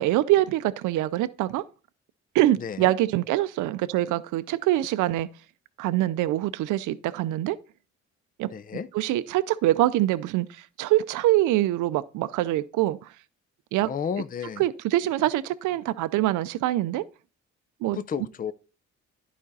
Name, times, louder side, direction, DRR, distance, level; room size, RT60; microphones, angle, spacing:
voice 1, 0.0-1.6 2.3-5.3 5.8-7.6 8.4-8.5 8.9-13.0 13.7-13.9 14.6-17.0 17.8-18.0, right 15 dB, 85° right, 0.5 m, -24 dB
voice 2, 2.6-2.9 8.5-8.9 13.8-14.6 17.9-18.5, left 7 dB, 30° left, 0.5 m, -32 dB
11.0 x 5.0 x 4.0 m
cardioid pair, 90°, 30 cm